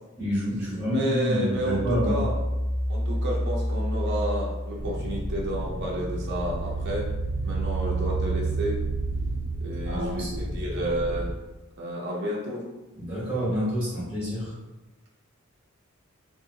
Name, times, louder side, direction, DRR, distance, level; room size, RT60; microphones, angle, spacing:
voice 1, 0.2-2.2 9.8-10.6 12.9-14.5, equal, 15° right, -12 dB, 1.0 m, -28 dB
voice 2, 0.9-2.3 2.9-7.0 7.4-8.8 9.6-11.3 11.8-12.6, right 1 dB, 50° right, -4 dB, 0.7 m, -31 dB
sound 1, 1.5-5.4 5.8-10.3, right 2 dB, 30° left, 0.5 m, -30 dB
sound 2, 4.8-11.3, equal, 80° left, 1.0 m, -33 dB
2.6 x 2.6 x 2.8 m, 1.1 s
head